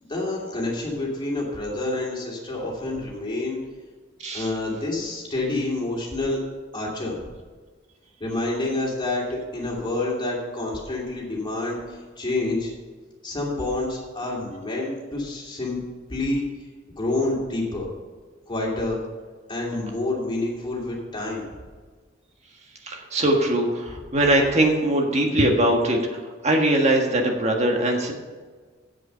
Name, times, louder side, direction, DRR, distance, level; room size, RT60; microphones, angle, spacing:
voice 1, 0.1-3.6 4.3-6.4 6.7-7.2 8.2-12.7 13.2-15.8 16.1-16.5 17.0-17.9 18.5-19.0 19.5-21.4, left 2 dB, 25° left, -3 dB, 2.7 m, -28 dB
voice 2, 22.8-28.1, right 1 dB, 35° right, 2 dB, 1.6 m, -21 dB
8.2 x 7.6 x 6.8 m, 1.4 s
head